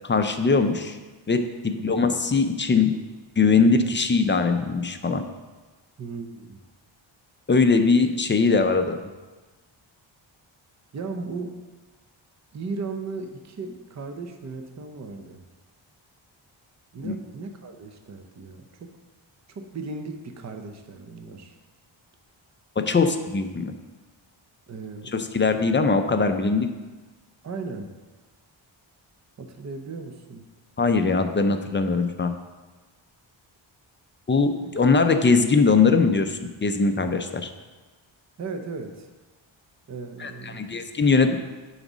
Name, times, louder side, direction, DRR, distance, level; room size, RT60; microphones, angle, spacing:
voice 1, 0.0-1.0 1.3-2.9 3.4-5.2 7.5-9.0 17.0-17.2 22.8-23.7 25.1-26.7 30.8-32.3 34.3-37.5 40.2-41.4, left 4 dB, 25° left, 7 dB, 0.5 m, -21 dB
voice 2, 6.0-6.6 10.9-11.6 12.5-15.5 16.9-18.9 19.6-21.5 24.7-25.2 27.4-27.9 29.4-30.5 34.6-34.7 38.4-39.1 39.9-40.8, right 4 dB, 35° right, 5 dB, 0.6 m, -36 dB
9.1 x 4.0 x 6.1 m, 1.3 s
wide cardioid pair, 155°, 48 cm